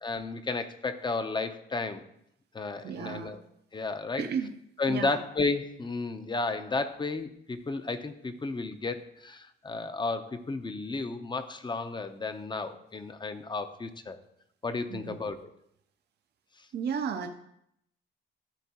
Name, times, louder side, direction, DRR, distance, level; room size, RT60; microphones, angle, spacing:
voice 1, 0.0-2.0 2.5-3.4 3.7-4.2 4.8-14.2 14.6-15.5 16.6-16.7, left 3 dB, 25° left, 9 dB, 0.7 m, -33 dB
voice 2, 2.8-3.4 4.2-4.5 4.9-5.2 14.9-15.2 16.7-17.3, right 7 dB, 55° right, 5 dB, 0.6 m, -33 dB
13.0 x 4.4 x 2.9 m, 0.75 s
cardioid pair, 90°, 20 cm